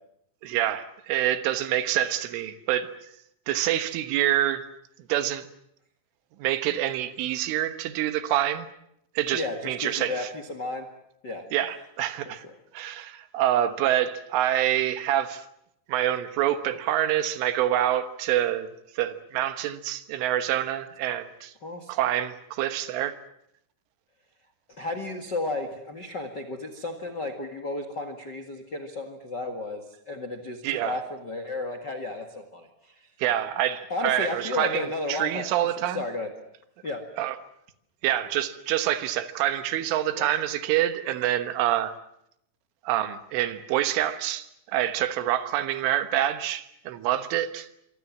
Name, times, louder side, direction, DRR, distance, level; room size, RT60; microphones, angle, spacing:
voice 1, 0.4-2.9 3.5-4.7 5.1-5.5 6.4-8.7 9.2-10.3 11.5-12.5 12.7-15.4 15.9-18.7 19.0-21.5 21.9-23.2 30.6-31.0 33.2-36.0 37.2-37.4 38.0-41.9 42.9-47.7, right 12 dB, 85° right, 11 dB, 3.8 m, -26 dB
voice 2, 9.3-10.9 11.2-11.4 12.2-12.6 21.6-21.9 24.7-33.1 33.9-36.3 36.8-37.0 40.1-40.3, left 2 dB, 70° left, 7 dB, 1.0 m, -33 dB
26.0 x 24.0 x 7.4 m, 0.76 s
omnidirectional pair, 5.5 m